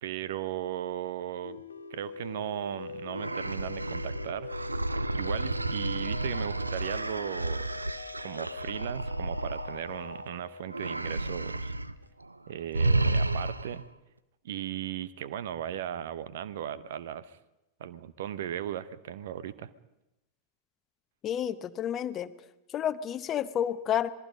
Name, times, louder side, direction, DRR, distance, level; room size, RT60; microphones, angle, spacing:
voice 1, 0.0-1.6 1.9-4.7 5.1-7.6 8.2-11.7 12.5-13.8 14.4-17.4 17.8-19.7, right 10 dB, 55° right, 17 dB, 0.9 m, -37 dB
sound 1, 1.4-11.8, left 4 dB, 75° left, 1.0 m, -43 dB
sound 2, 3.1-10.3 10.7-11.9 12.2-12.4 12.7-13.9, right 2 dB, 80° right, 0.7 m, -31 dB
voice 2, 21.2-22.3 22.7-24.1, left 10 dB, 30° left, 14 dB, 0.9 m, -30 dB
27.0 x 21.0 x 5.3 m, 0.96 s
figure-of-eight pair, 90°, 0 cm